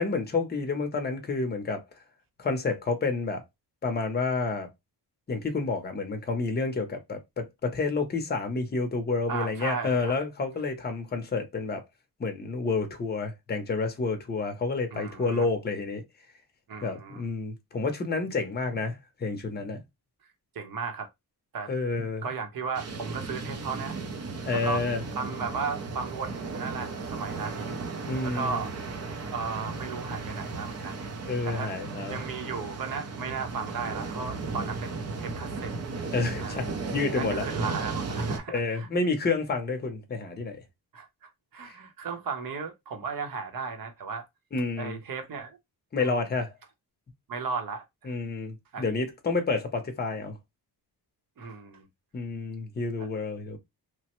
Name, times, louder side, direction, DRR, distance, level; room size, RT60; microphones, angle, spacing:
voice 1, 0.0-1.8 2.4-3.4 3.8-4.7 5.3-11.8 12.2-16.0 16.8-19.8 21.7-22.2 24.4-25.0 28.1-28.6 31.3-32.2 36.1-37.5 38.5-40.6 41.7-41.8 44.5-45.0 45.9-46.5 48.0-50.4 52.1-53.6, left 3 dB, 25° left, 0.6 m, -29 dB
voice 2, 9.3-10.2 14.9-15.5 16.7-17.2 20.5-21.1 21.5-21.7 22.2-24.0 24.5-24.9 25.1-27.7 28.2-28.7 29.3-31.0 31.4-31.7 32.1-35.7 36.4-36.7 37.2-38.9 40.9-44.2 44.8-45.6 46.0-46.2 47.3-48.2 48.7-48.8 51.4-51.9 53.0-53.1, right 5 dB, 55° right, 0.9 m, -35 dB
sound 1, 22.7-38.4, right 3 dB, 40° right, 0.5 m, -35 dB
3.1 x 2.1 x 2.9 m
wide cardioid pair, 155°, 40 cm